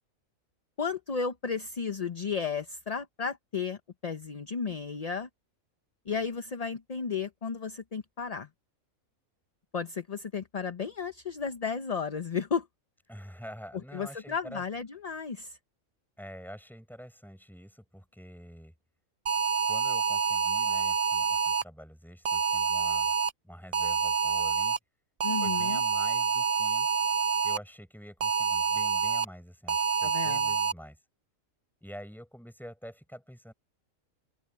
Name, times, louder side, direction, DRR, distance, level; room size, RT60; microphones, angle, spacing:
voice 1, 0.8-5.3 6.1-8.5 9.7-12.7 13.9-15.6 25.2-25.8 30.0-30.5, left 6 dB, 35° left, 0.7 m, -33 dB
voice 2, 13.1-14.6 16.2-18.7 19.7-23.1 23.4-24.8 25.4-26.9 27.4-31.0 31.8-33.5, equal, ahead, 7.4 m, -47 dB
sound 1, 19.3-21.6 22.3-23.3 23.7-24.8 25.2-27.6 28.2-29.2 29.7-30.7, right 5 dB, 40° right, 0.6 m, -27 dB
open air
omnidirectional pair, 1.4 m